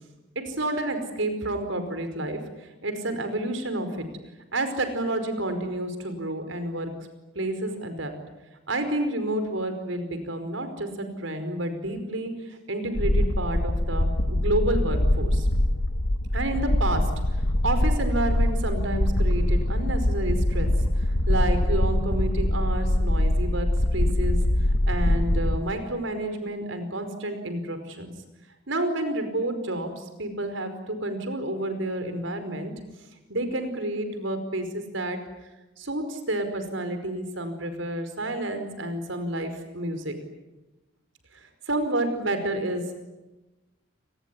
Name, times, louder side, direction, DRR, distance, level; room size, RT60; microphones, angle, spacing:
voice 1, 0.4-2.4 2.8-4.1 4.5-6.9 7.3-8.1 8.7-15.5 16.3-17.0 17.6-20.7 21.3-24.4 24.9-28.1 28.7-32.7 33.3-35.2 35.8-40.2 41.7-43.0, right 1 dB, 80° right, 9 dB, 5.0 m, -29 dB
sound 1, 12.9-25.6, left 1 dB, 85° left, 1.5 m, -23 dB
29.5 x 20.0 x 10.0 m, 1.1 s
head